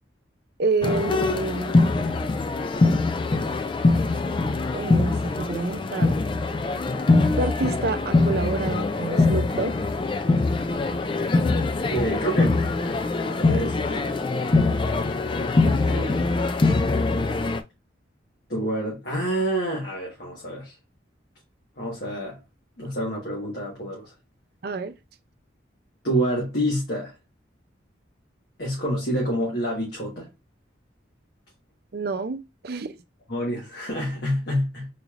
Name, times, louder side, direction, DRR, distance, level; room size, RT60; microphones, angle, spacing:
voice 1, 0.6-1.8 4.7-6.2 7.4-9.7 15.6-16.2 24.6-25.0 31.9-32.9, right 3 dB, 55° right, 0.5 m, -28 dB
sound 1, 0.8-17.6, left 3 dB, 25° left, 0.3 m, -23 dB
voice 2, 11.9-12.6 13.2-14.1 18.5-20.7 21.8-22.4 22.8-24.1 26.0-27.1 28.6-30.3 33.3-34.9, right 1 dB, 60° left, 1.4 m, -27 dB
3.9 x 3.2 x 2.4 m
head